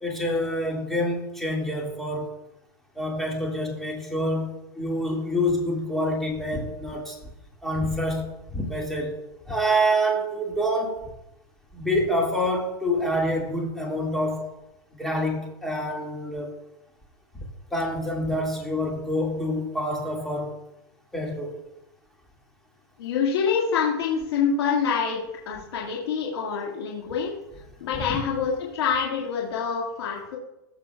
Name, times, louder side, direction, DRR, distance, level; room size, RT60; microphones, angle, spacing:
voice 1, 0.0-2.3 3.0-7.2 7.6-8.3 8.5-9.2 9.5-11.1 11.7-14.5 14.9-16.5 17.3-20.5 21.1-21.5 27.9-28.2, equal, ahead, -2 dB, 1.8 m, -27 dB
voice 2, 23.0-27.3 27.8-30.4, left 6 dB, 85° left, -3 dB, 1.8 m, -26 dB
15.0 x 6.4 x 2.2 m, 0.88 s
supercardioid pair, 140°, 13 cm